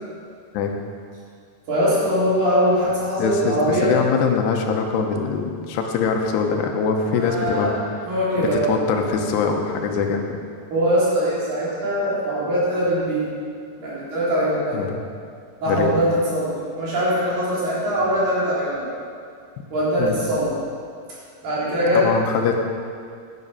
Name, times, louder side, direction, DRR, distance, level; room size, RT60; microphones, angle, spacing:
voice 1, 1.7-3.9 7.2-7.8 8.1-8.7 10.7-13.3 13.8-14.8 15.6-18.9 19.7-20.6 21.4-22.1, equal, 55° right, -9 dB, 5.2 m, -22 dB
voice 2, 3.2-7.8 8.5-10.4 14.7-15.0 15.7-15.9 20.0-20.1 21.9-22.7, left 5 dB, 85° left, 3 dB, 3.1 m, -23 dB
11.0 x 10.5 x 5.6 m, 2.2 s
omnidirectional pair, 4.7 m